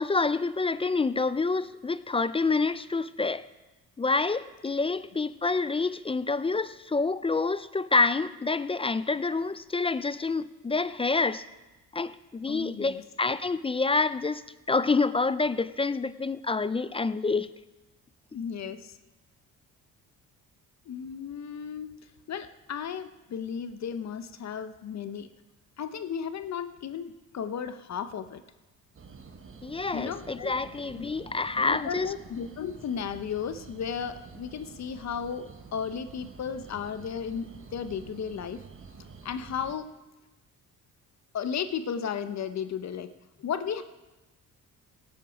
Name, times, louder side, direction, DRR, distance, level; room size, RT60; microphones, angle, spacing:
voice 1, 0.0-3.4 4.0-11.4 11.9-14.4 14.7-17.5 29.6-32.1, left 3 dB, 15° left, 15 dB, 0.3 m, -27 dB
voice 2, 12.5-13.0 18.3-19.0 20.9-22.0 22.3-25.3 25.8-28.4 29.9-30.6 31.0-31.1 31.6-38.6 39.2-39.9 41.3-43.1 43.4-43.8, left 7 dB, 50° left, 11 dB, 0.8 m, -34 dB
sound 1, 28.9-39.7, right 5 dB, 40° right, 1.3 m, -48 dB
17.5 x 8.7 x 5.1 m, 1.1 s
cardioid pair, 100°, 34 cm